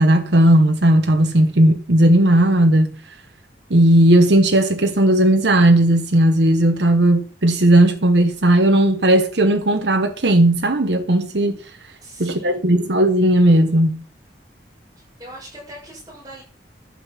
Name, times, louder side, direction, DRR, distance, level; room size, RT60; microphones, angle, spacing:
voice 1, 0.0-3.0 3.7-11.6 12.2-14.0, right 1 dB, 80° right, 1.2 m, -15 dB
voice 2, 12.0-12.6 15.0-16.4, right 1 dB, 20° right, 7.5 m, -40 dB
12.0 x 7.8 x 5.9 m
head